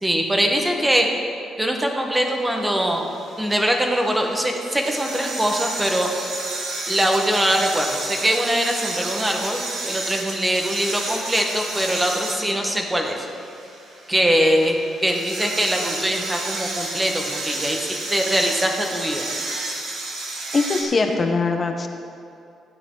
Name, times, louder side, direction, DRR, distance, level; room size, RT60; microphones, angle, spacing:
voice 1, 0.0-1.1 1.6-3.1 3.4-6.1 6.9-13.1 14.1-19.3, equal, 10° right, 2 dB, 1.4 m, -22 dB
sound 1, 2.1-20.8, right 2 dB, 70° right, 2.1 m, -32 dB
voice 2, 20.5-21.9, left 3 dB, 35° left, 4 dB, 1.1 m, -21 dB
15.0 x 8.9 x 4.0 m, 2.5 s
cardioid pair, 90°, 0 cm